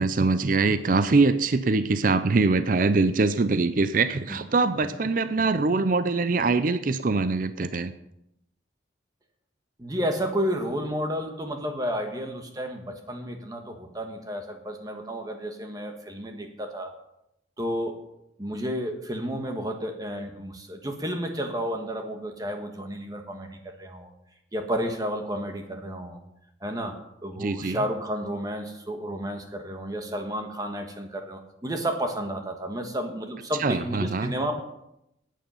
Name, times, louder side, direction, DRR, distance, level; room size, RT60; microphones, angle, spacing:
voice 1, 0.0-7.9 27.4-27.8 33.6-34.3, right 3 dB, 45° right, 12 dB, 0.5 m, -23 dB
voice 2, 9.8-16.9 17.6-18.0 18.4-24.1 24.5-26.2 26.6-34.6, equal, 20° right, 4 dB, 1.4 m, -31 dB
12.5 x 9.3 x 5.7 m, 0.83 s
head